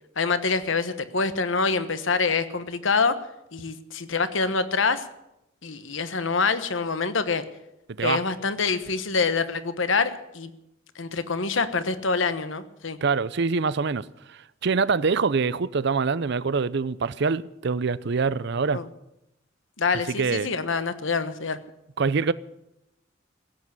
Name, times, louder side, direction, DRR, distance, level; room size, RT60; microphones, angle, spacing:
voice 1, 0.2-3.2 3.5-5.1 5.6-7.4 8.0-10.5 10.9-13.0 18.7-18.9 19.8-21.6, left 4 dB, 70° left, 1.1 m, -26 dB
voice 2, 13.0-18.8 20.2-20.5 22.0-22.3, right 4 dB, 55° right, 0.5 m, -25 dB
16.5 x 8.4 x 9.8 m
head